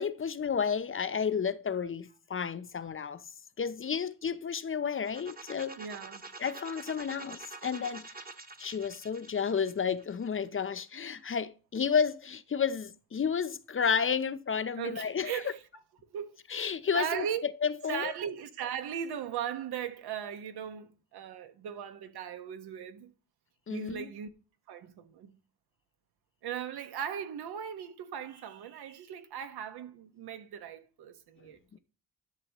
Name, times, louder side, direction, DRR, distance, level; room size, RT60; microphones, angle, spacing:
voice 1, 0.0-3.2 3.6-5.8 6.4-8.1 8.6-15.4 16.5-18.1 23.7-24.1 31.7-31.8, left 6 dB, 35° left, 0.8 m, -31 dB
sound 1, 5.0-10.8, right 3 dB, 25° right, 1.2 m, -47 dB
voice 2, 5.7-7.0 14.7-15.8 16.1-16.4 16.9-17.5 17.8-23.1 23.7-24.3 24.7-25.4 26.4-31.8, right 9 dB, 80° right, 1.5 m, -38 dB
12.0 x 6.8 x 3.1 m
cardioid pair, 85°, 38 cm